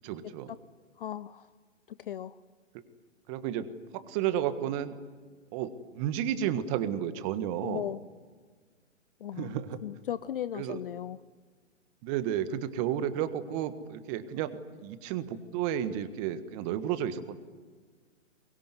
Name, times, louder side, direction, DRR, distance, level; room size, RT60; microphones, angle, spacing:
voice 1, 0.0-0.5 3.3-5.0 5.5-7.9 9.3-9.8 10.5-10.8 12.0-17.4, right 10 dB, 30° right, 11 dB, 1.6 m, -32 dB
voice 2, 1.0-1.5 2.1-2.3 7.6-8.0 9.2-9.5 9.8-11.2, left 11 dB, 45° left, 16 dB, 0.7 m, -36 dB
23.5 x 22.0 x 9.7 m, 1.5 s
figure-of-eight pair, 125°, 37 cm